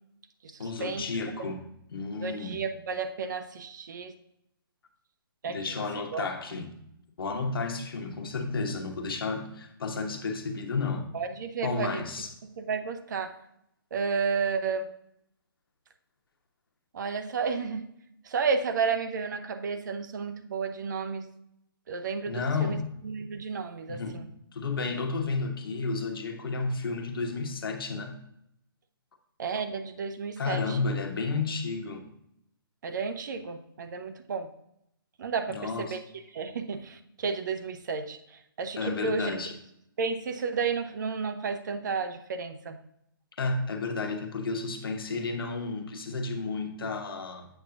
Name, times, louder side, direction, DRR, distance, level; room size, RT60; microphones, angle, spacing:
voice 1, 0.6-1.6 1.9-2.6 5.4-6.7 7.2-11.1 11.6-12.3 22.3-22.9 23.9-24.2 24.5-28.2 30.4-32.1 35.5-36.0 38.8-39.5 43.4-47.5, left 4 dB, 70° left, 5 dB, 1.2 m, -32 dB
voice 2, 2.2-4.1 5.4-5.6 6.1-6.3 11.1-12.0 12.6-13.3 13.9-14.9 16.9-17.9 18.3-21.2 21.9-22.8 23.0-24.3 29.4-30.8 32.8-34.5 35.2-36.0 36.3-38.2 38.6-39.3 40.0-42.8, right 5 dB, 50° right, 8 dB, 0.8 m, -32 dB
8.1 x 6.9 x 2.6 m, 0.77 s
hypercardioid pair, 150°, 13 cm